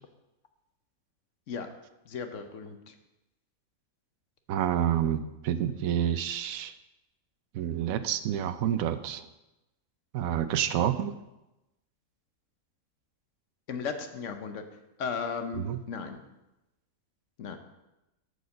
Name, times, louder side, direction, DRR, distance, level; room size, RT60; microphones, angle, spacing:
voice 1, 2.1-2.9 13.7-14.6 15.0-16.2 17.4-17.6, left 5 dB, 65° left, 7 dB, 1.1 m, -35 dB
voice 2, 4.5-6.7 7.5-9.2 10.1-11.1 15.6-15.8, right 10 dB, 75° right, 12 dB, 1.0 m, -28 dB
8.0 x 5.1 x 6.5 m, 0.97 s
omnidirectional pair, 1.5 m